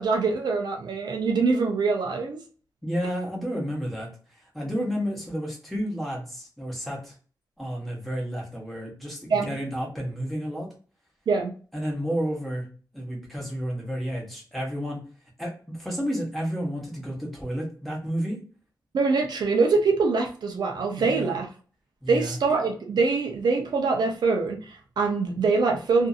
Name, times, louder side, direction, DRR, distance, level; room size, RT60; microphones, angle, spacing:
voice 1, 0.0-2.4 9.3-9.5 11.3-11.5 18.9-21.5 22.1-26.1, right 4 dB, 75° right, 3 dB, 0.6 m, -24 dB
voice 2, 2.8-7.1 7.6-10.7 11.7-12.7 12.9-15.0 15.4-18.4 21.0-21.4 22.0-22.4, equal, ahead, -3 dB, 1.0 m, -31 dB
2.6 x 2.5 x 2.4 m, 0.39 s
wide cardioid pair, 180°, 7 cm